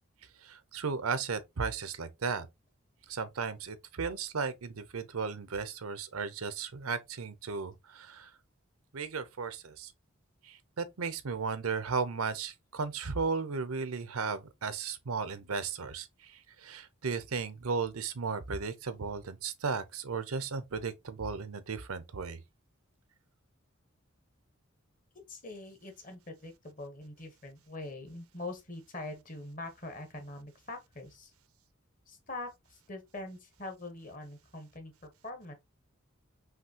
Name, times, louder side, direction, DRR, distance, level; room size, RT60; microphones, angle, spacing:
voice 1, 0.4-2.5 3.1-8.3 8.9-9.9 10.4-22.4, right 5 dB, 90° right, 0.7 m, -35 dB
voice 2, 25.3-31.3 32.1-35.5, left 2 dB, 40° left, 1.2 m, -43 dB
5.8 x 2.8 x 2.8 m
head